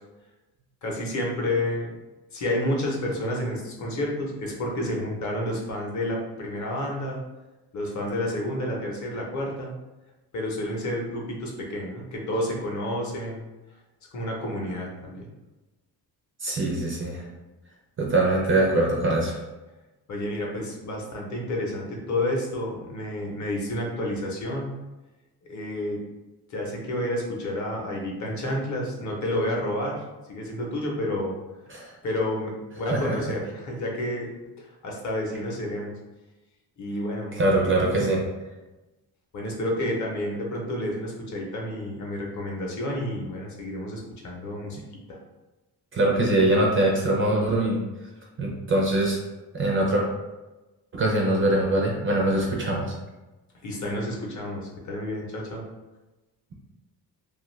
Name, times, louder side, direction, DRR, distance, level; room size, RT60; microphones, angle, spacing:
voice 1, 0.8-1.9 2.3-7.2 7.7-9.7 10.3-13.5 14.1-15.3 20.1-24.7 25.5-26.0 26.5-30.0 30.3-31.4 32.0-34.3 34.6-35.9 36.8-37.3 39.3-45.2 53.6-55.6, left 1 dB, 45° left, -1 dB, 0.7 m, -30 dB
voice 2, 16.4-17.3 18.0-19.4 31.7-31.9 32.9-33.2 37.4-38.2 45.9-47.8 48.4-49.2 49.5-50.0 50.9-53.0, right 1 dB, 35° right, -1 dB, 0.4 m, -23 dB
2.5 x 2.4 x 3.0 m, 1.1 s
cardioid pair, 160°, 40 cm